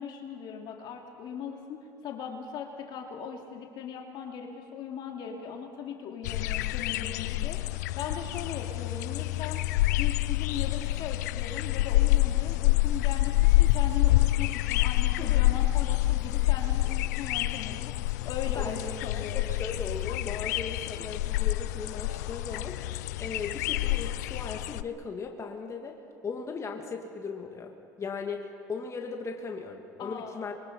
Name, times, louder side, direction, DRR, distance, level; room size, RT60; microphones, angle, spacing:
voice 1, 0.0-9.6 10.0-17.9 18.2-19.5 30.0-30.5, left 7 dB, 55° left, 2 dB, 2.9 m, -39 dB
sound 1, 6.2-24.8, left 17 dB, 80° left, 0.5 m, -27 dB
voice 2, 18.4-27.7 28.0-30.6, left 4 dB, 35° left, 2 dB, 2.5 m, -38 dB
26.5 x 23.5 x 5.7 m, 2.4 s
hypercardioid pair, 75°, 9 cm